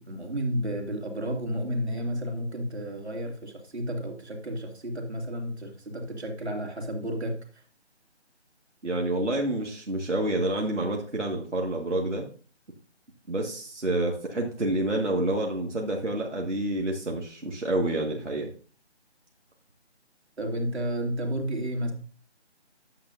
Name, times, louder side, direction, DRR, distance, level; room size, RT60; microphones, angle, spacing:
voice 1, 0.1-7.3 20.4-21.9, equal, 65° right, 2 dB, 2.8 m, -31 dB
voice 2, 8.8-12.2 13.3-18.5, right 1 dB, 85° right, 0 dB, 2.1 m, -28 dB
12.0 x 7.7 x 2.7 m, 0.41 s
figure-of-eight pair, 170°, 35 cm